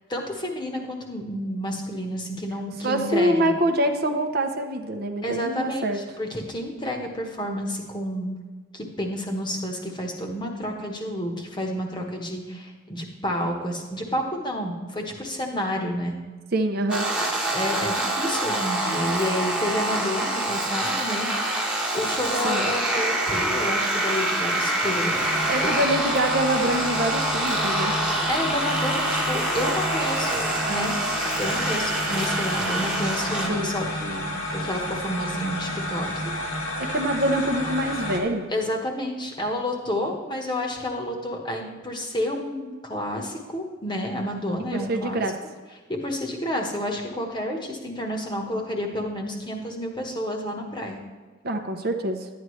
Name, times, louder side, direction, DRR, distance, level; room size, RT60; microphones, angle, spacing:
voice 1, 0.1-3.5 5.2-8.3 8.7-16.2 17.5-21.3 21.9-25.2 28.3-30.4 30.6-31.0 31.4-34.3 34.5-36.2 36.5-36.8 38.5-45.2 45.9-51.0, left 1 dB, 20° left, 1 dB, 1.1 m, -30 dB
voice 2, 2.8-6.0 16.5-17.1 22.4-22.7 25.4-27.9 33.5-33.7 36.9-38.5 44.7-45.3 51.4-52.3, right 1 dB, 45° right, 4 dB, 0.7 m, -25 dB
sound 1, 16.9-33.5, right 1 dB, 5° right, 1.1 m, -26 dB
sound 2, 25.1-38.2, left 1 dB, 85° left, 2.0 m, -31 dB
11.5 x 9.4 x 3.1 m, 1.4 s
head